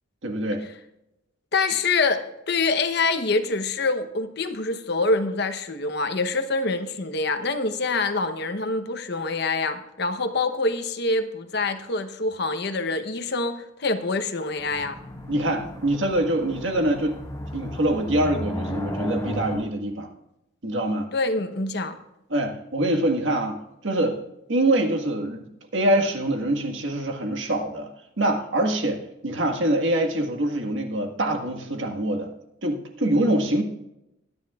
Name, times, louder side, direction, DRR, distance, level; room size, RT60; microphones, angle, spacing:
voice 1, 0.2-0.6 15.3-17.2 17.5-20.1 20.6-21.1 22.3-23.6 23.8-24.2 24.5-27.9 28.2-32.3 32.6-33.6, right 1 dB, 70° right, 4 dB, 1.7 m, -24 dB
voice 2, 1.5-15.0 21.1-22.0, left 3 dB, 55° left, 8 dB, 1.0 m, -25 dB
sound 1, 14.6-19.6, equal, 15° left, 2.6 m, -34 dB
23.0 x 9.8 x 2.4 m, 0.87 s
head